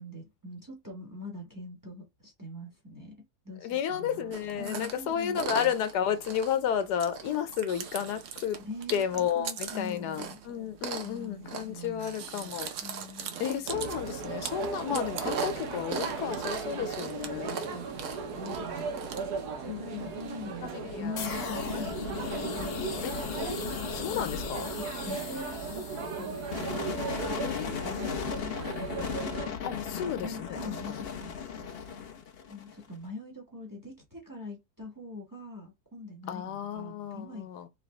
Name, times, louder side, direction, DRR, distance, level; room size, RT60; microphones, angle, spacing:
voice 1, 0.0-3.1 3.4-5.7 8.6-10.4 11.0-12.2 12.8-13.5 17.4-19.2 19.6-23.2 24.2-24.3 24.7-27.6 27.8-32.1 32.5-37.5, left 2 dB, 15° right, 1.0 m, -43 dB
voice 2, 3.6-8.6 8.9-12.7 13.4-17.6 19.6-20.1 20.6-21.6 23.0-23.1 23.9-24.7 27.4-28.4 29.6-31.0 36.3-37.7, left 9 dB, 85° left, 1.3 m, -32 dB
Chewing mastication, 4.3-19.2, right 7 dB, 60° right, 0.9 m, -40 dB
Students lunchtime, 13.7-29.5, right 5 dB, 75° right, 1.5 m, -37 dB
sound 1, 21.2-32.9, left 7 dB, 65° left, 0.6 m, -37 dB
4.1 x 3.0 x 3.2 m
omnidirectional pair, 1.7 m